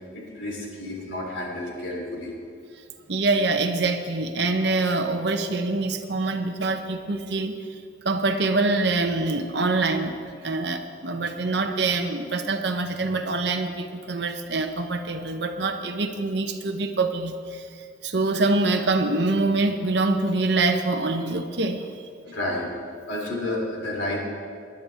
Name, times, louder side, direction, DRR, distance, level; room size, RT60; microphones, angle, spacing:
voice 1, 0.1-2.3 22.2-22.7 23.1-24.2, left 1 dB, 90° left, -2 dB, 3.1 m, -30 dB
voice 2, 3.1-7.8 8.0-17.7 18.0-21.9, right 3 dB, 60° right, 6 dB, 0.8 m, -25 dB
19.5 x 10.5 x 3.5 m, 2.3 s
head